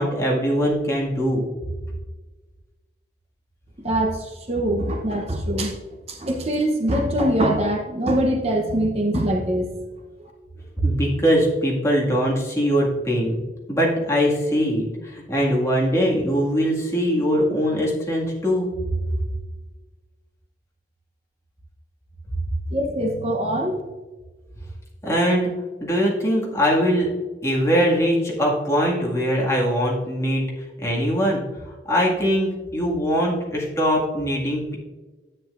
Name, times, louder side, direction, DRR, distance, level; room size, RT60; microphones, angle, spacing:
voice 1, 0.0-1.4 10.8-13.4 13.7-18.7 25.0-25.5 25.8-27.1 27.4-30.5 30.8-31.4 31.9-34.8, equal, 15° left, -4 dB, 2.0 m, -21 dB
voice 2, 3.8-5.8 6.1-9.7 22.7-23.8, right 1 dB, 35° right, 2 dB, 0.9 m, -23 dB
10.0 x 9.0 x 2.5 m, 1.3 s
head